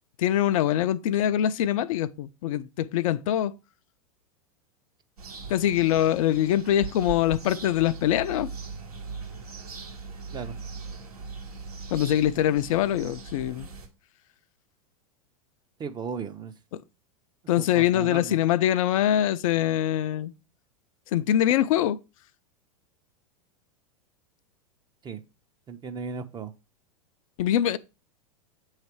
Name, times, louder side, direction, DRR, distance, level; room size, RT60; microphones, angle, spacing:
voice 1, 0.2-3.5 5.5-8.5 11.9-13.7 16.7-16.8 17.5-20.3 21.1-22.0 27.4-27.8, left 11 dB, 65° left, 0.4 m, -23 dB
sound 1, 5.2-13.9, right 4 dB, 85° right, 1.8 m, -40 dB
voice 2, 15.8-16.5 17.6-18.4 25.0-25.2 25.7-26.5, right 5 dB, 20° right, 0.6 m, -36 dB
8.0 x 3.2 x 4.6 m
hypercardioid pair, 95°, 19 cm